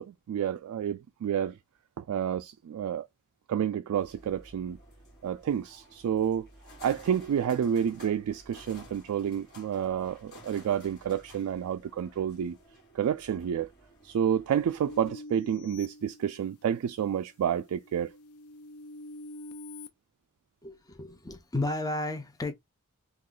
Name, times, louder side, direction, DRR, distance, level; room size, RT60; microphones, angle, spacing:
voice 1, 0.0-1.6 2.0-3.1 3.5-4.8 5.2-6.5 6.8-12.6 12.9-13.7 14.0-18.1, right 9 dB, 75° right, 0.3 m, -29 dB
sound 1, 3.9-15.1, equal, 50° left, 1.8 m, -54 dB
sound 2, 14.9-16.8 17.3-19.9, left 2 dB, 70° left, 0.5 m, -46 dB
voice 2, 20.6-22.5, left 2 dB, 15° left, 0.7 m, -33 dB
2.8 x 2.4 x 3.8 m
head